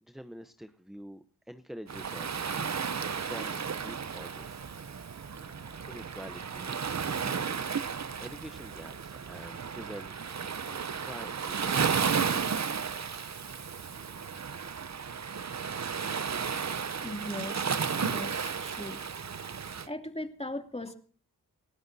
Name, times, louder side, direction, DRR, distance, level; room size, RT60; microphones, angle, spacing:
voice 1, 0.0-2.8 3.1-5.1 5.4-5.5 5.9-6.9 8.2-12.7, equal, ahead, 10 dB, 0.9 m, -47 dB
Waves surf, 1.9-19.9, right 6 dB, 45° right, 0.8 m, -33 dB
sound 1, 2.6-19.3, right 4 dB, 65° right, 2.5 m, -59 dB
voice 2, 17.0-19.0 19.5-21.0, left 1 dB, 15° left, 4 dB, 2.7 m, -39 dB
29.0 x 13.0 x 2.8 m, 0.41 s
cardioid pair, 40°, 38 cm